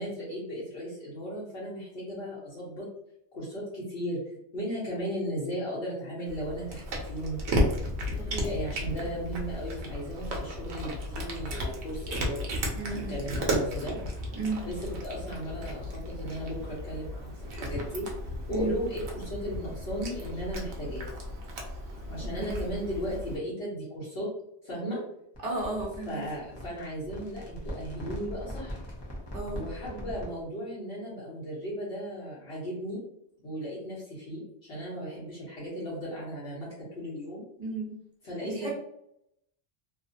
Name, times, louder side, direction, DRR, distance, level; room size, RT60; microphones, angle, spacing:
voice 1, 0.0-2.9 3.3-4.2 4.5-7.4 8.0-12.5 12.9-14.0 14.6-14.8 15.0-18.0 18.5-21.1 22.1-24.3 24.6-25.0 26.1-28.8 29.5-33.0 33.4-37.4 38.2-38.7, equal, 65° left, -8 dB, 1.2 m, -36 dB
Cat, 6.3-23.4, equal, 75° right, 0.9 m, -34 dB
voice 2, 12.7-13.2 14.4-14.6 18.5-18.7 22.2-22.6 25.4-26.2 29.3-29.6 37.6-37.9 38.4-38.7, right 2 dB, 40° right, -4 dB, 1.0 m, -33 dB
sound 1, 25.3-30.4, equal, 30° left, 0.6 m, -40 dB
2.8 x 2.1 x 2.6 m, 0.77 s
omnidirectional pair, 1.1 m